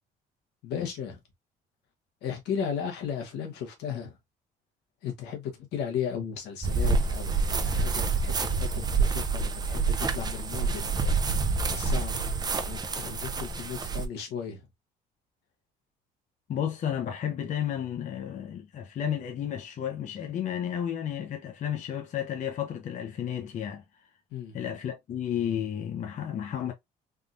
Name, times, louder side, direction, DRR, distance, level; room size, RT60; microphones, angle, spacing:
voice 1, 0.6-1.2 2.2-4.2 5.0-12.2 12.7-14.7 24.3-24.6, left 8 dB, 85° left, 1.2 m, -36 dB
sound 1, 6.6-14.1, right 4 dB, 25° right, 0.5 m, -27 dB
voice 2, 16.5-23.8 24.5-26.7, left 9 dB, 45° left, 0.6 m, -32 dB
3.6 x 2.3 x 2.6 m
cardioid pair, 110°, 17 cm